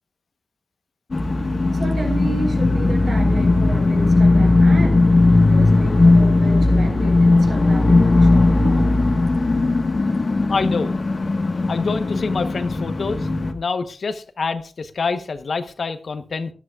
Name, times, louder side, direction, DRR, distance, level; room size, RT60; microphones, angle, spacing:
sound 1, 1.1-13.5, left 2 dB, 45° left, 1.4 m, -17 dB
voice 1, 1.7-5.1 5.4-9.1, right 2 dB, 55° right, 2 dB, 4.5 m, -31 dB
voice 2, 10.5-10.9 11.7-13.3 13.5-16.5, left 4 dB, 65° left, 9 dB, 1.1 m, -26 dB
18.5 x 12.5 x 2.4 m, 0.37 s
wide cardioid pair, 105°, 0 cm